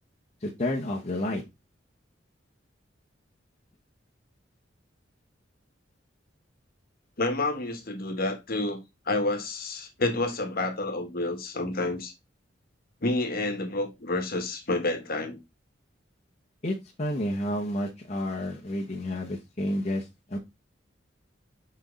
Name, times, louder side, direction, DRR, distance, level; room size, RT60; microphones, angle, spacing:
voice 1, 0.4-1.4 16.6-20.4, left 1 dB, 35° left, 1.1 m, -30 dB
voice 2, 7.2-8.8 9.1-12.1 13.0-15.4, left 2 dB, 50° left, 1.4 m, -29 dB
6.2 x 4.4 x 3.9 m
head